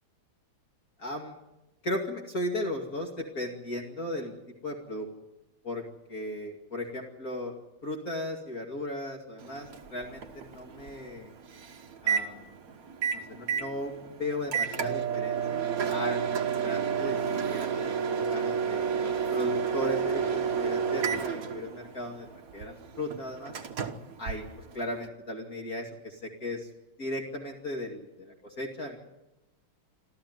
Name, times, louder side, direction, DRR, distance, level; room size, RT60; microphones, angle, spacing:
voice 1, 1.0-1.4 1.8-4.3 4.6-5.1 5.6-5.8 6.1-7.5 7.8-11.3 12.0-12.5 13.1-22.3 22.5-23.5 24.2-26.7 27.0-29.0, left 1 dB, 45° left, 1 dB, 2.7 m, -36 dB
Microwave oven, 9.4-25.1, right 7 dB, 45° right, 1.6 m, -31 dB
27.0 x 14.5 x 9.4 m, 0.99 s
omnidirectional pair, 2.3 m